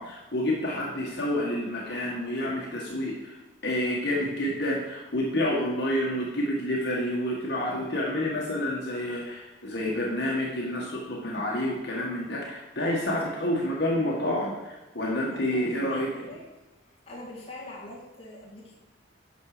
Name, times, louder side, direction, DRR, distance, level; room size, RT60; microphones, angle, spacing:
voice 1, 0.0-3.4 3.6-16.1, left 1 dB, 60° left, -3 dB, 1.8 m, -29 dB
voice 2, 13.1-13.5 15.3-16.4 17.1-18.7, left 1 dB, 30° left, -6 dB, 2.0 m, -43 dB
11.5 x 6.2 x 5.1 m, 1.1 s
head